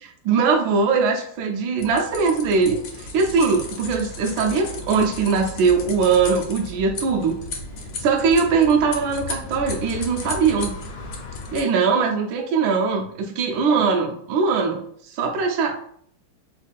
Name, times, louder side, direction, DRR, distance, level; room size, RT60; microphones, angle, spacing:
voice 1, 0.0-7.4 8.0-10.8 11.5-15.8, right 5 dB, 75° right, 2 dB, 1.3 m, -21 dB
sound 1, 1.8-11.6, left 3 dB, 70° left, 0.9 m, -34 dB
3.6 x 2.3 x 3.4 m, 0.64 s
omnidirectional pair, 2.3 m